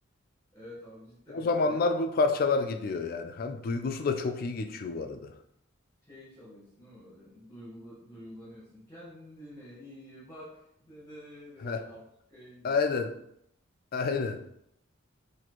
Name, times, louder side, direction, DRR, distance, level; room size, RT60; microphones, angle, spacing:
voice 1, 0.5-1.8 6.0-13.1 14.1-14.3, equal, 15° left, -8 dB, 0.9 m, -49 dB
voice 2, 1.3-5.3 11.6-11.8 12.6-13.1 13.9-14.4, left 4 dB, 45° left, 6 dB, 0.3 m, -28 dB
4.1 x 2.6 x 3.0 m, 0.74 s
head